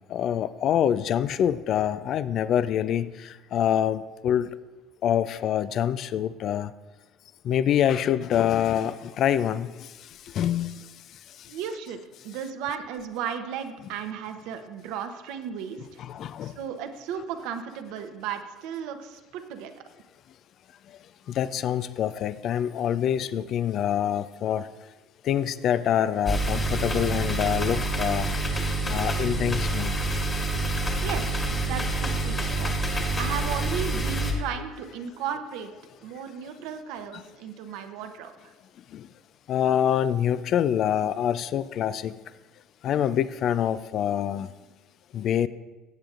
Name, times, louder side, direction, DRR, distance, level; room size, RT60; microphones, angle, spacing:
voice 1, 0.1-4.5 5.0-6.7 7.4-9.9 10.3-10.8 16.0-16.6 21.3-24.7 25.2-28.3 28.9-29.9 32.3-32.4 37.1-37.2 38.9-39.1 39.5-42.1 42.8-44.5 45.1-45.5, left 10 dB, 55° left, 0.4 m, -25 dB
voice 2, 11.5-12.0 12.2-15.8 16.4-19.7 31.0-32.7 33.2-35.7 36.0-38.3, right 8 dB, 70° right, 0.8 m, -35 dB
sound 1, 26.3-34.3, right 2 dB, 30° left, 2.0 m, -27 dB
15.5 x 7.7 x 2.5 m
supercardioid pair, 80°, 0 cm